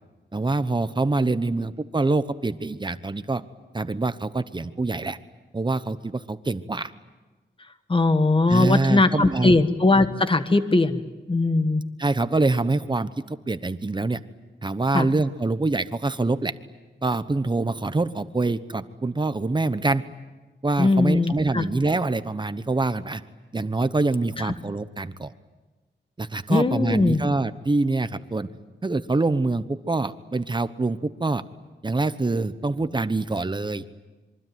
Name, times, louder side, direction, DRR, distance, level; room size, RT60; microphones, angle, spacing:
voice 1, 0.3-3.4 3.7-5.2 5.5-6.9 8.5-9.6 12.0-14.2 14.6-16.5 17.0-20.0 20.6-23.2 23.5-25.3 26.2-28.5 28.8-31.4 31.8-33.8, right 3 dB, 25° right, 12 dB, 1.0 m, -25 dB
voice 2, 7.9-11.0 11.3-11.8 14.9-15.1 20.8-21.7 24.4-24.5 26.5-27.2, left 2 dB, 25° left, 10 dB, 1.4 m, -20 dB
26.5 x 24.0 x 9.4 m, 1.2 s
wide cardioid pair, 140°, 19 cm